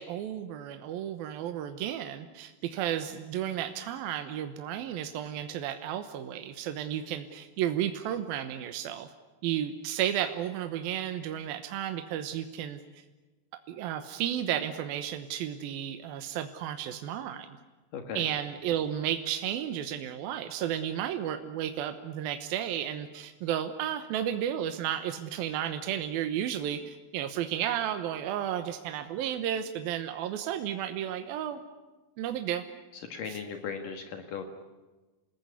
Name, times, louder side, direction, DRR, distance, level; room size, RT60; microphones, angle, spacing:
voice 1, 0.0-9.1 9.4-12.8 13.7-17.5 18.2-31.6 32.2-32.6, right 10 dB, 80° right, 8 dB, 2.9 m, -33 dB
voice 2, 17.9-18.3 32.9-34.4, left 6 dB, 65° left, 6 dB, 3.2 m, -37 dB
28.5 x 20.0 x 9.7 m, 1.2 s
omnidirectional pair, 4.2 m